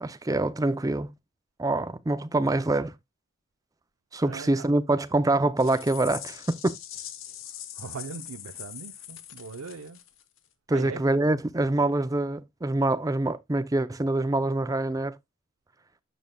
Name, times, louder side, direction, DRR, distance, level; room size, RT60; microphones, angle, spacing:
voice 1, 0.0-1.1 1.6-2.9 4.1-6.8 10.7-15.1, right 2 dB, 15° right, 0.4 m, -25 dB
voice 2, 4.2-4.6 7.8-10.0 10.7-11.0, right 5 dB, 90° right, 0.6 m, -40 dB
sound 1, 5.6-10.4, left 11 dB, 70° left, 0.9 m, -42 dB
9.2 x 6.5 x 2.2 m
head